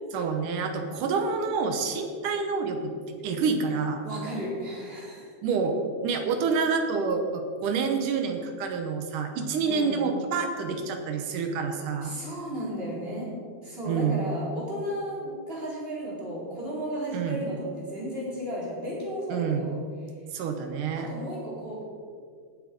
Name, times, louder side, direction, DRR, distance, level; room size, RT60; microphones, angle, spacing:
voice 1, 0.1-2.9 3.2-4.0 5.4-5.8 6.0-12.2 13.9-14.2 17.1-17.4 19.3-19.6 20.3-21.1, right 5 dB, 65° right, 5 dB, 2.3 m, -28 dB
voice 2, 4.0-5.3 9.6-10.0 11.3-11.5 12.0-13.3 13.6-19.8 21.0-21.8, equal, 15° right, -6 dB, 3.9 m, -34 dB
18.0 x 7.8 x 5.3 m, 2.1 s
omnidirectional pair, 4.5 m